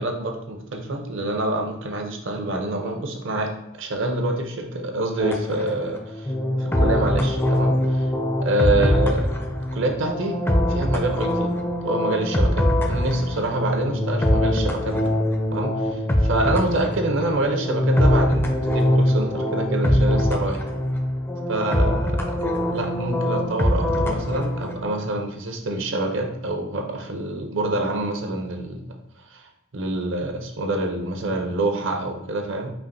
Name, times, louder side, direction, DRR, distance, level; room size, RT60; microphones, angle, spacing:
voice 1, 0.0-6.3 6.6-8.1 8.4-9.3 9.7-10.4 10.7-11.5 11.8-15.1 15.5-20.6 21.5-22.3 22.7-29.0 29.3-32.7, right 2 dB, 65° right, 4 dB, 0.7 m, -26 dB
sound 1, 5.2-24.8, left 1 dB, 10° left, 0.4 m, -23 dB
5.6 x 2.5 x 2.6 m, 0.85 s
head